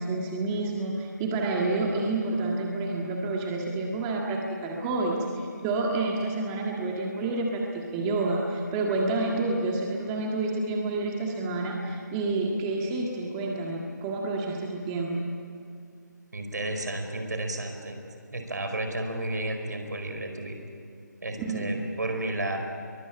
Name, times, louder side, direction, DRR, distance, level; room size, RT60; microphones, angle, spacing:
voice 1, 0.0-15.1 21.4-21.7, right 2 dB, 15° right, -1 dB, 1.8 m, -29 dB
voice 2, 16.3-18.0 18.3-20.6 21.2-22.6, right 1 dB, 65° right, 5 dB, 4.7 m, -32 dB
23.0 x 22.0 x 8.9 m, 2.4 s
figure-of-eight pair, 155°, 10 cm